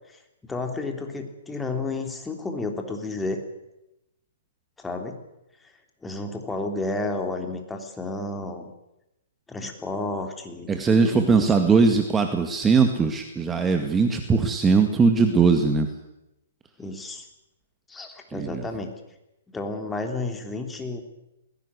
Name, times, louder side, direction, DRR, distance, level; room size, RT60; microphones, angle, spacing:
voice 1, 0.4-3.4 4.8-5.2 6.0-8.7 9.5-11.5 16.8-17.3 17.9-18.9 19.5-21.0, left 2 dB, 10° left, 4 dB, 3.3 m, -31 dB
voice 2, 10.7-15.9 18.3-18.7, right 4 dB, 15° right, 6 dB, 1.9 m, -20 dB
20.5 x 17.0 x 9.7 m, 0.90 s
figure-of-eight pair, 125°, 0 cm